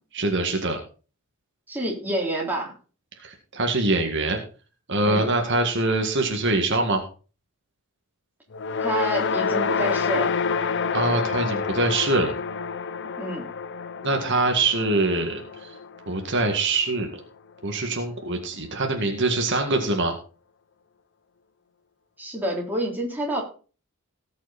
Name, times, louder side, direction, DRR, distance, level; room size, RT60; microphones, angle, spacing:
voice 1, 0.1-0.8 3.2-4.4 4.9-7.0 10.9-12.3 14.0-15.7 16.1-17.2 17.6-20.1, right 2 dB, 60° right, 3 dB, 1.9 m, -24 dB
voice 2, 1.7-2.7 5.1-5.3 8.8-10.3 13.2-13.4 22.2-23.4, right 1 dB, 10° right, -2 dB, 3.7 m, -28 dB
sound 1, 8.5-16.9, left 5 dB, 60° left, 0.7 m, -28 dB
18.5 x 6.3 x 4.2 m, 0.37 s
head